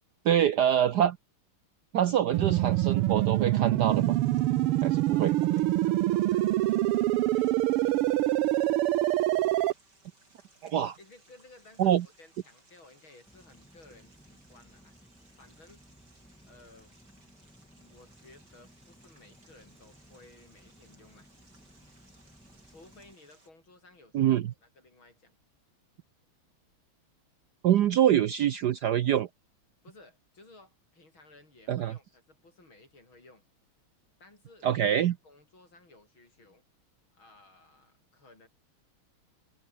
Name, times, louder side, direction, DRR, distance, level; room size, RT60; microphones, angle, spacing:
voice 1, 0.2-1.2 1.9-4.2 4.8-5.3 10.6-11.0 11.8-12.0 24.1-24.5 27.6-29.3 31.7-31.9 34.6-35.2, right 10 dB, 65° right, 1.1 m, -25 dB
sound 1, 2.3-9.7, right 16 dB, 85° right, 1.6 m, -25 dB
sound 2, 3.8-23.5, right 2 dB, 50° right, 7.1 m, -63 dB
voice 2, 5.0-8.5 11.0-15.0 15.4-15.8 16.5-17.0 17.8-21.3 22.7-25.4 29.8-33.4 34.2-36.6 37.1-38.5, left 2 dB, 65° left, 8.4 m, -57 dB
Insect, 13.3-23.1, equal, ahead, 4.4 m, -58 dB
omnidirectional pair, 2.4 m